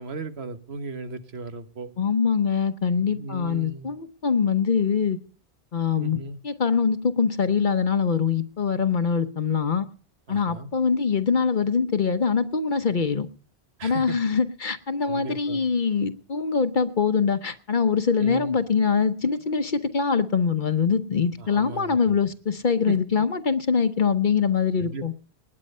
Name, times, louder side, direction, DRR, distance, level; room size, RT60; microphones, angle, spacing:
voice 1, 0.0-1.9 3.0-3.9 6.0-6.4 10.3-10.7 13.8-14.2 15.1-15.7 18.1-18.6 21.4-22.1 22.9-23.0 24.8-25.1, right 3 dB, 90° right, 10 dB, 1.5 m, -36 dB
voice 2, 2.0-5.2 5.7-6.2 6.4-9.9 10.3-13.3 13.8-25.1, left 6 dB, 55° left, 10 dB, 1.0 m, -23 dB
19.5 x 8.9 x 5.4 m, 0.42 s
omnidirectional pair, 1.0 m